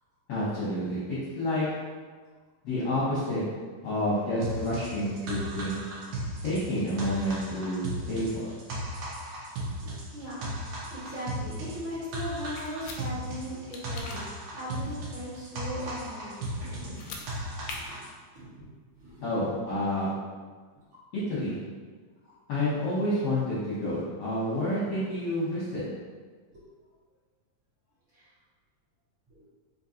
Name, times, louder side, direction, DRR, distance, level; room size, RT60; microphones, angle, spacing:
voice 1, 0.3-1.8 2.6-3.4 3.8-5.8 6.4-8.5 19.2-20.1 21.1-21.6 22.5-25.8, left 1 dB, 75° left, -10 dB, 1.4 m, -29 dB
sound 1, 4.4-18.1, right 1 dB, 70° right, 1.9 m, -36 dB
voice 2, 9.8-14.3 14.5-17.9 18.3-18.7 18.9-19.3 22.2-22.3 26.5-26.6 28.1-28.3 29.3-29.4, equal, 55° right, -13 dB, 1.5 m, -39 dB
sound 2, 12.6-13.0 13.7-14.2 16.9-17.2 17.6-17.8, left 4 dB, 90° left, 2.3 m, -40 dB
5.1 x 2.6 x 2.7 m, 1.5 s
omnidirectional pair, 3.9 m